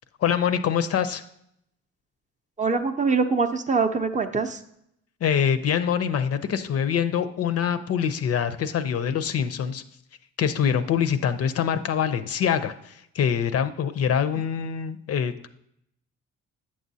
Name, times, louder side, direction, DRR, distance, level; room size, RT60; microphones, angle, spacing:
voice 1, 0.2-1.2 5.2-9.8 10.4-15.5, left 8 dB, 55° left, 11 dB, 0.5 m, -24 dB
voice 2, 2.6-4.6, right 4 dB, 25° right, 5 dB, 0.5 m, -23 dB
8.6 x 6.2 x 2.7 m, 0.75 s
cardioid pair, 90°, 30 cm